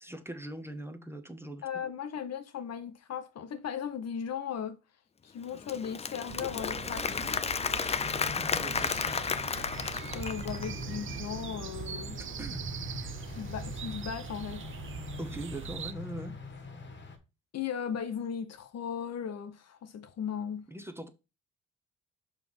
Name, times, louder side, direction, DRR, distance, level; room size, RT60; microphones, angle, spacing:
voice 1, 0.0-1.6 8.2-9.2 12.2-12.6 15.2-16.3 20.7-21.1, right 1 dB, 10° right, 0.8 m, -41 dB
voice 2, 1.6-4.8 5.2-7.4 10.1-12.2 13.3-14.7 17.5-20.7, left 8 dB, 55° left, 0.9 m, -37 dB
Applause / Crowd, 5.4-10.8, left 5 dB, 20° left, 0.4 m, -33 dB
sound 1, 6.3-15.9, right 9 dB, 45° right, 0.5 m, -42 dB
sound 2, 8.0-17.2, left 4 dB, 40° left, 1.4 m, -44 dB
5.9 x 3.3 x 5.4 m
cardioid pair, 90°, 30 cm